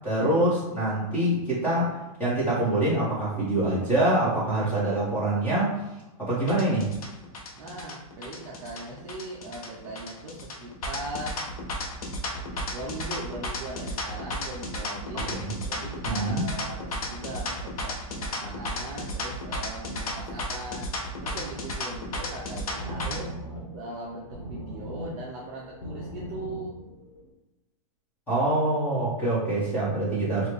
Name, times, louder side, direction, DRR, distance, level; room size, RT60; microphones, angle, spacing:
voice 1, 0.0-5.7 6.2-6.9 15.1-15.5 16.0-16.4 28.3-30.5, right 1 dB, 10° left, -9 dB, 1.4 m, -25 dB
sound 1, 6.5-23.2, left 1 dB, 80° left, 0.9 m, -33 dB
voice 2, 7.5-11.4 12.4-15.4 15.7-20.9 21.2-23.3 23.7-26.8, right 2 dB, 30° right, -4 dB, 0.5 m, -39 dB
sound 2, 22.1-27.3, equal, 45° left, 1.3 m, -40 dB
4.5 x 2.4 x 3.3 m, 1.0 s
supercardioid pair, 170°, 18 cm